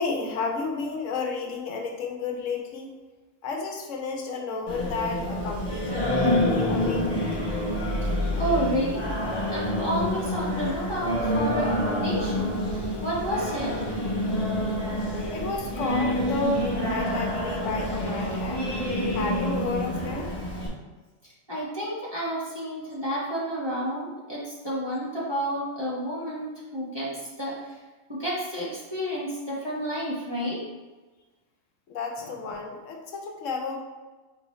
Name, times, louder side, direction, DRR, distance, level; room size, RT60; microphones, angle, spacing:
voice 1, 0.0-2.9 3.4-7.1 15.3-18.7 19.1-20.3 31.9-33.8, left 4 dB, 75° left, 2 dB, 1.0 m, -32 dB
Singing, 4.7-20.7, left 1 dB, 20° left, 0.9 m, -27 dB
voice 2, 8.4-9.0 9.5-12.6 13.0-13.7 21.5-27.1 27.4-27.7 28.1-30.6, right 1 dB, 20° right, -7 dB, 1.1 m, -30 dB
4.5 x 3.7 x 3.1 m, 1.2 s
omnidirectional pair, 1.3 m